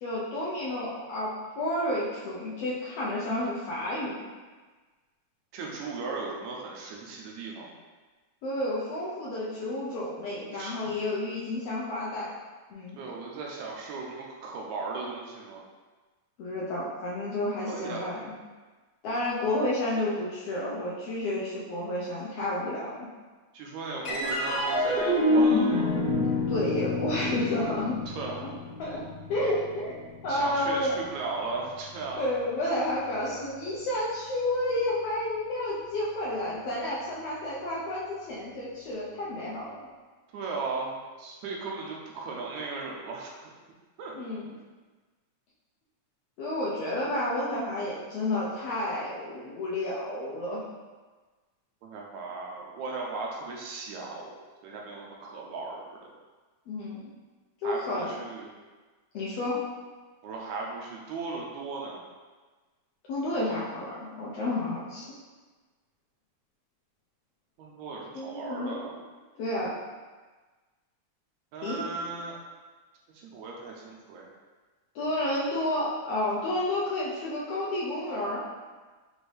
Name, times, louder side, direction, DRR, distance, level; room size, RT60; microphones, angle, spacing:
voice 1, 0.0-4.2 8.4-12.3 12.7-13.0 16.4-18.3 19.0-23.0 26.5-28.0 28.8-29.0 29.3-30.0 30.2-31.0 32.2-39.9 44.1-44.5 46.4-50.6 56.7-57.1 57.6-58.1 59.1-59.6 63.1-65.1 68.1-68.8 69.4-69.8 71.6-71.8 74.9-78.4, left 1 dB, 75° left, -7 dB, 1.5 m, -31 dB
voice 2, 5.5-7.7 10.5-10.8 13.0-15.6 17.7-18.2 23.5-25.9 28.2-28.4 30.3-32.2 40.3-43.3 44.0-44.1 51.8-54.4 54.6-56.1 57.6-58.5 60.2-62.0 67.6-68.9 71.5-72.4 73.1-74.3, right 3 dB, 80° right, -2 dB, 1.9 m, -37 dB
sound 1, 24.0-30.7, left 1 dB, 40° left, 1.2 m, -27 dB
6.1 x 2.6 x 3.2 m, 1.3 s
omnidirectional pair, 3.4 m